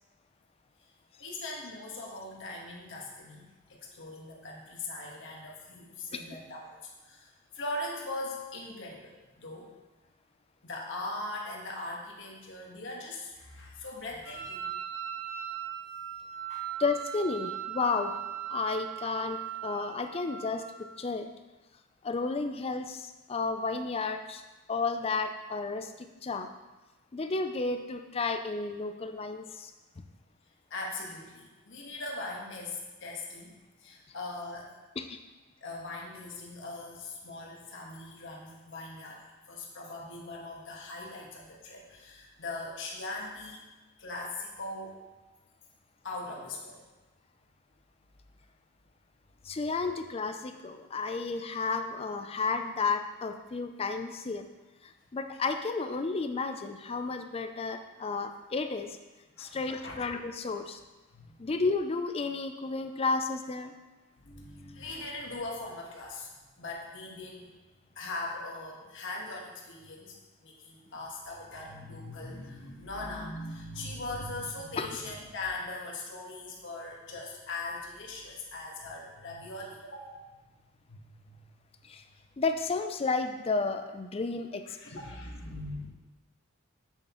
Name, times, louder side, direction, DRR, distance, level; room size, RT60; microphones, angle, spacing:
voice 1, 1.2-3.5 3.9-6.8 7.0-7.3 7.5-9.7 10.6-14.7 16.5-16.7 30.7-33.5 33.8-34.7 35.6-39.2 39.5-43.6 44.0-45.0 46.0-46.8 59.4-60.0 61.1-61.4 64.2-66.3 66.6-67.5 67.9-70.2 70.4-80.3 80.9-81.4 84.7-85.9, left 2 dB, 60° left, -2 dB, 1.4 m, -40 dB
Wind instrument woodwind instrument, 14.2-20.8, right 10 dB, 10° left, 2.4 m, -39 dB
voice 2, 16.8-18.2 18.5-21.3 22.0-24.4 24.7-26.5 27.1-29.7 35.0-35.2 49.4-54.5 54.8-59.0 59.4-60.8 61.4-63.7 74.8-74.9 81.8-82.0 82.4-85.0, left 4 dB, 25° left, 7 dB, 0.4 m, -32 dB
8.1 x 7.0 x 3.0 m, 1.1 s
head